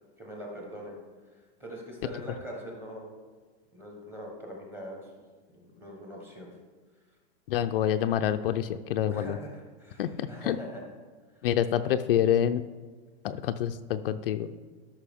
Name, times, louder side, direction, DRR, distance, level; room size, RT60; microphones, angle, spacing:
voice 1, 0.2-1.0 1.6-3.1 3.7-5.1 5.5-6.5 9.1-10.8, equal, 5° right, -1 dB, 1.0 m, -42 dB
voice 2, 7.5-9.4 10.0-10.6 11.4-12.6 13.2-14.5, left 10 dB, 65° left, 9 dB, 0.5 m, -27 dB
13.0 x 5.7 x 3.5 m, 1.4 s
supercardioid pair, 180°, 31 cm